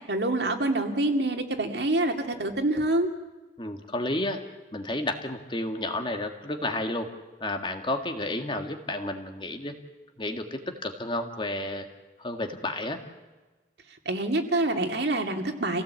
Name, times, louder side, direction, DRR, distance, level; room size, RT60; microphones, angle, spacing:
voice 1, 0.1-3.1 14.1-15.8, right 2 dB, 65° right, 4 dB, 2.4 m, -26 dB
voice 2, 3.6-4.4 4.7-7.1 7.4-9.7 10.2-11.9 12.2-13.0, left 1 dB, 25° left, 5 dB, 1.8 m, -31 dB
28.0 x 17.0 x 8.3 m, 1.2 s
head